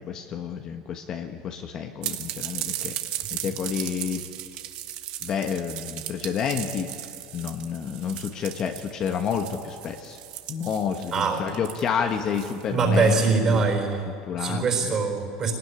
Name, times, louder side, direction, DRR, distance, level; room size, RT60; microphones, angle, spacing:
voice 1, 0.0-3.0 3.3-4.2 5.2-6.9 7.3-10.2 10.5-13.6 14.3-15.0, left 7 dB, 30° left, 5 dB, 1.2 m, -30 dB
sound 1, 2.0-13.1, right 13 dB, 50° right, 1.5 m, -36 dB
voice 2, 11.1-11.6 12.7-15.5, right 4 dB, 25° right, 4 dB, 4.1 m, -23 dB
25.0 x 19.0 x 9.9 m, 2.4 s
cardioid pair, 160°, 2 cm